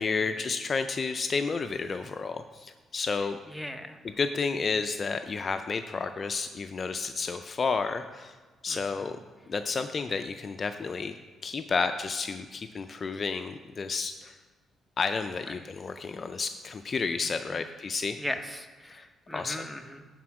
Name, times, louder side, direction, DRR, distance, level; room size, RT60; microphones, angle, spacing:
voice 1, 0.0-3.4 4.0-8.4 8.6-9.2 9.5-11.1 11.4-14.4 15.0-18.2 18.9-19.1 19.3-19.6, left 4 dB, 40° left, 8 dB, 0.4 m, -31 dB
voice 2, 3.5-4.0 8.7-8.8 17.5-17.6 18.2-20.0, left 1 dB, 5° left, 5 dB, 0.8 m, -38 dB
12.0 x 4.3 x 4.8 m, 1.3 s
cardioid pair, 90°, 0 cm